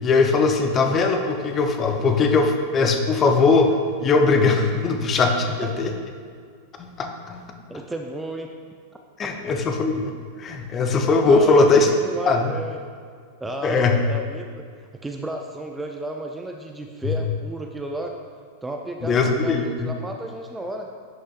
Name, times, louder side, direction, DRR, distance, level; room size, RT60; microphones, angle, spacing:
voice 1, 0.0-3.7 4.0-5.9 6.8-7.5 9.2-10.1 10.4-11.9 12.3-12.5 13.6-14.0 17.1-17.2 19.0-19.9, left 4 dB, 25° left, 5 dB, 0.7 m, -20 dB
voice 2, 7.7-8.5 9.2-9.3 11.2-12.8 13.4-14.7 15.0-18.2 18.6-20.9, right 1 dB, 10° right, 3 dB, 0.5 m, -32 dB
10.5 x 6.3 x 2.4 m, 2.1 s
figure-of-eight pair, 90°, 0 cm